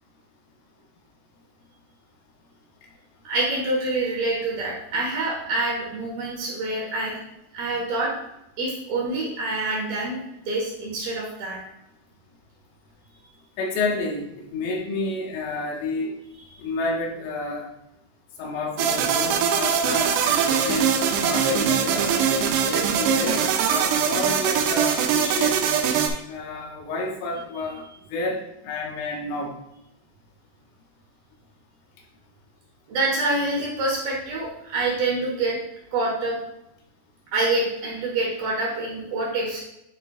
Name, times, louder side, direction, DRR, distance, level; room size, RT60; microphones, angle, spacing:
voice 1, 3.2-7.2 7.5-8.1 8.6-10.2 10.5-11.6 19.4-20.0 32.9-35.6 35.9-36.4 37.3-39.6, right 2 dB, 65° right, -3 dB, 2.6 m, -26 dB
voice 2, 13.6-16.2 16.6-17.7 18.4-22.3 22.7-23.4 23.7-25.6 26.2-27.8 28.1-29.6, left 2 dB, 85° left, 0 dB, 3.7 m, -30 dB
sound 1, 18.8-26.1, right 7 dB, 80° right, 2.5 m, -22 dB
9.2 x 6.4 x 2.4 m, 0.84 s
omnidirectional pair, 5.7 m